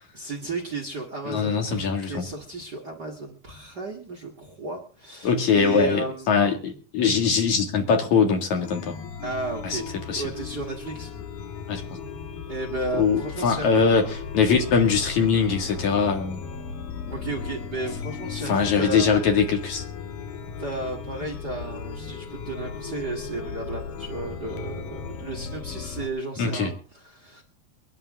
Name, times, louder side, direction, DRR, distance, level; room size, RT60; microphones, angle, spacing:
voice 1, 0.1-6.5 9.2-9.9 10.1-11.1 12.5-13.7 17.1-19.1 20.6-27.4, right 2 dB, 40° right, 1 dB, 1.5 m, -33 dB
voice 2, 1.3-2.3 5.2-9.0 9.6-9.8 10.1-10.2 11.7-11.8 12.9-16.4 18.5-19.8 26.4-26.7, left 5 dB, 50° left, 3 dB, 3.2 m, -22 dB
Chime, 8.6-26.1, left 6 dB, 70° left, 2.9 m, -36 dB
23.0 x 11.5 x 3.7 m, 0.37 s
omnidirectional pair, 4.5 m